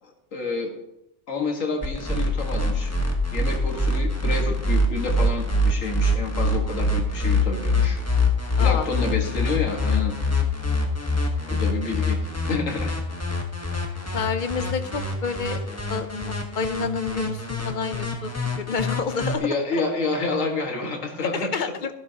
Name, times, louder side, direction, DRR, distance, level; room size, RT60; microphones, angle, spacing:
voice 1, 0.0-0.7 1.3-2.9 3.3-8.0 8.6-10.2 11.5-12.2 12.5-13.0 13.8-13.9 19.4-21.5, left 3 dB, 70° left, 2 dB, 2.1 m, -29 dB
sound 1, 1.8-19.3, left 1 dB, 10° left, 1.2 m, -24 dB
voice 2, 8.6-8.9 14.1-18.3 18.6-19.8 21.2-21.9, left 5 dB, 50° left, 10 dB, 0.7 m, -29 dB
13.5 x 11.5 x 2.9 m, 0.85 s
omnidirectional pair, 1.4 m